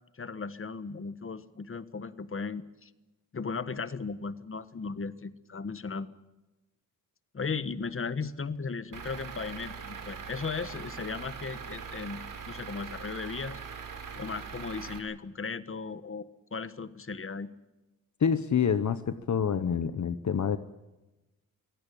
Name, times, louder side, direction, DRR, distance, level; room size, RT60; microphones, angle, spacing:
voice 1, 0.1-2.9 3.3-6.1 7.3-12.2 12.5-13.6 14.1-17.5, left 4 dB, 40° left, 14 dB, 1.4 m, -36 dB
Truck / Idling, 8.9-15.0, right 6 dB, 65° right, 3.7 m, -41 dB
voice 2, 18.2-20.6, left 7 dB, 55° left, 12 dB, 1.0 m, -27 dB
25.0 x 17.0 x 8.6 m, 1.1 s
cardioid pair, 90°, 34 cm